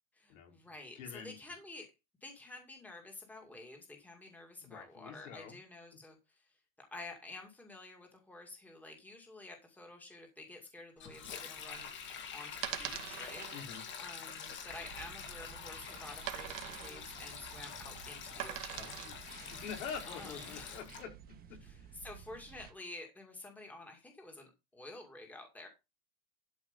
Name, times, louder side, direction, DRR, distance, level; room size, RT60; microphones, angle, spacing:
voice 1, 0.1-1.9 2.2-6.5 6.9-11.9 12.3-13.5 14.0-18.8 20.1-20.8 21.6-25.7, left 2 dB, 5° left, 2 dB, 2.2 m, -50 dB
voice 2, 1.0-1.4 4.6-5.6 13.5-13.8 18.7-21.9, left 6 dB, 70° left, 1 dB, 4.8 m, -46 dB
Sink (filling or washing), 11.0-21.0, left 6 dB, 30° left, 2.1 m, -46 dB
sound 1, 11.6-19.3, right 13 dB, 80° right, 2.2 m, -44 dB
sound 2, 14.7-22.7, right 8 dB, 20° right, 1.6 m, -54 dB
12.5 x 5.3 x 5.3 m, 0.25 s
supercardioid pair, 165°, 40 cm